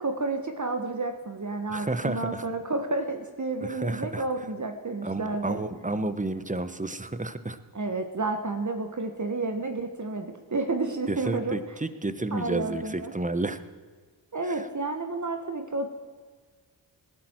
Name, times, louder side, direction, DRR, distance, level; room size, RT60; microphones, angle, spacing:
voice 1, 0.0-5.6 7.7-11.6 12.3-13.1 14.3-15.9, right 3 dB, 40° right, 5 dB, 1.4 m, -31 dB
voice 2, 1.7-2.4 3.6-4.2 5.0-7.6 11.1-13.6 14.4-14.7, right 2 dB, 15° right, 12 dB, 1.1 m, -31 dB
19.5 x 11.5 x 4.6 m, 1.5 s
cardioid pair, 50°, 47 cm